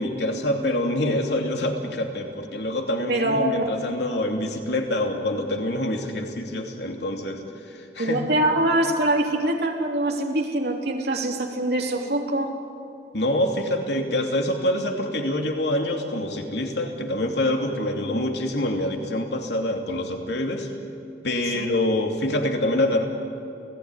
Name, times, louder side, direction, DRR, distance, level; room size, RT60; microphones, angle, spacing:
voice 1, 0.0-8.2 13.1-20.7 21.2-23.0, left 1 dB, 75° left, 3 dB, 2.8 m, -26 dB
voice 2, 3.1-3.7 8.0-12.5 21.5-21.7, right 1 dB, 65° right, 1 dB, 3.5 m, -24 dB
29.5 x 18.5 x 9.9 m, 2.7 s
head